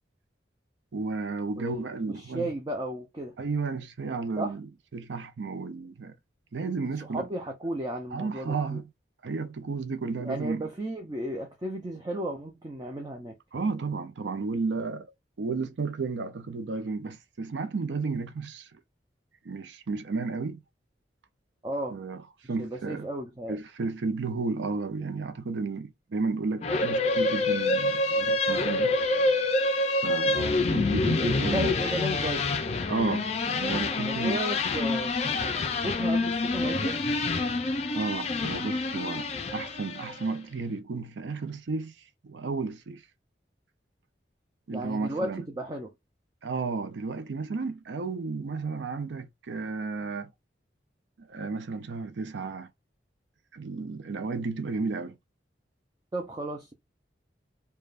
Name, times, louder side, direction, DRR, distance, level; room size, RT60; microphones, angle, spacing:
voice 1, 0.9-2.5 3.4-4.7 4.9-6.1 6.5-7.2 8.1-8.8 9.2-10.7 13.5-15.1 15.4-18.7 19.4-20.6 21.9-22.2 22.5-23.1 23.5-28.9 30.0-30.4 30.7-31.7 32.9-34.4 37.9-41.9 42.2-43.0 44.7-45.4 46.4-50.3 51.2-52.7 53.5-55.2, right 4 dB, 85° right, 0.5 m, -32 dB
voice 2, 1.6-3.3 4.4-4.5 7.1-8.8 10.2-13.4 21.6-22.0 22.6-23.6 30.3-30.6 31.4-32.5 34.1-35.1 35.6-37.0 44.7-45.9 56.1-56.7, right 1 dB, 20° right, 0.5 m, -34 dB
sound 1, 26.6-40.2, left 2 dB, 35° left, 0.4 m, -27 dB
3.3 x 2.2 x 2.4 m
head